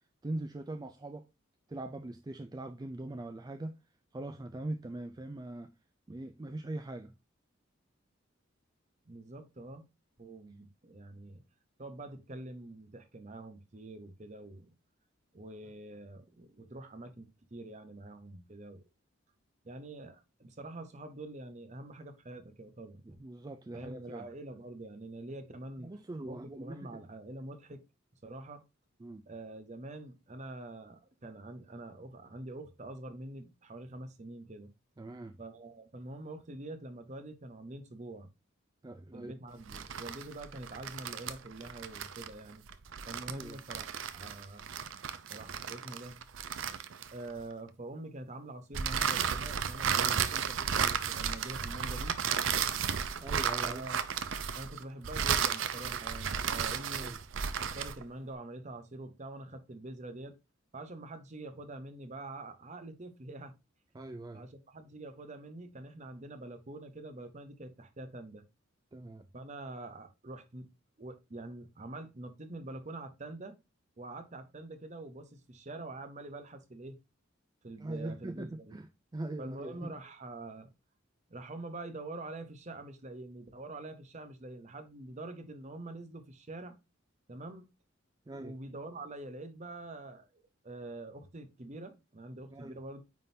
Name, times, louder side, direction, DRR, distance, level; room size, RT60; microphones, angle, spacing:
voice 1, 0.2-1.3 1.7-3.7 4.1-5.7 6.1-7.1 23.0-24.3 25.8-26.9 29.0-29.3 35.0-35.4 38.8-39.3 43.3-43.6 49.9-50.2 53.2-53.8 57.0-57.2 63.9-64.5 68.9-69.3 77.8-78.9 79.1-79.9 88.3-88.6 92.5-92.8, right 2 dB, 20° right, 0.4 m, -41 dB
voice 2, 9.1-9.9 10.2-11.4 11.8-14.7 15.3-18.8 19.6-23.2 23.7-25.9 26.2-27.8 28.2-28.6 29.2-34.7 35.4-38.3 39.1-42.6 43.0-44.6 45.3-46.2 47.1-52.2 53.6-54.0 54.5-57.1 57.6-60.3 60.7-63.5 64.3-68.4 69.3-70.7 71.0-73.6 74.0-77.0 77.6-78.8 79.4-80.7 81.3-86.8 87.3-87.7 88.3-93.0, right 2 dB, 35° right, 0.8 m, -45 dB
sound 1, 39.6-47.4 48.7-58.0, right 7 dB, 75° right, 0.6 m, -34 dB
9.3 x 3.8 x 2.7 m
head